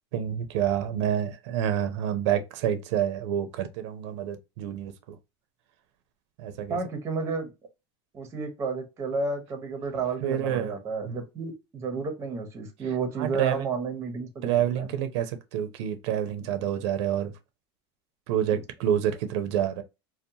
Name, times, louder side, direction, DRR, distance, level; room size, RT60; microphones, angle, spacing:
voice 1, 0.1-5.2 6.4-6.8 10.2-10.7 11.1-11.2 13.2-13.6 14.4-17.3 18.3-19.8, right 10 dB, 75° right, 0.5 m, -28 dB
voice 2, 6.7-7.5 8.1-14.9 18.5-18.6, right 4 dB, 20° right, 0.6 m, -31 dB
2.6 x 2.1 x 2.7 m
supercardioid pair, 150°, 15 cm